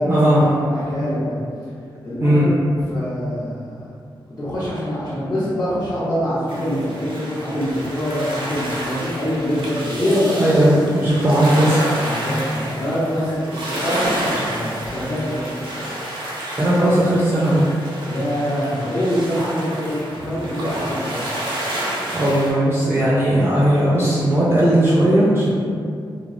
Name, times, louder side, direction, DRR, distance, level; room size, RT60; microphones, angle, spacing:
voice 1, 0.0-0.4 2.2-2.5 10.0-11.8 16.6-17.6 22.1-25.5, right 1 dB, 25° right, -8 dB, 0.4 m, -17 dB
voice 2, 0.6-1.3 2.0-2.5 2.9-3.9 4.3-10.3 12.0-15.4 18.1-21.2, equal, 45° left, -13 dB, 0.8 m, -24 dB
sound 1, 6.5-22.5, right 1 dB, 85° right, 0.6 m, -29 dB
3.3 x 2.0 x 2.4 m, 2.3 s
wide cardioid pair, 125°, 9 cm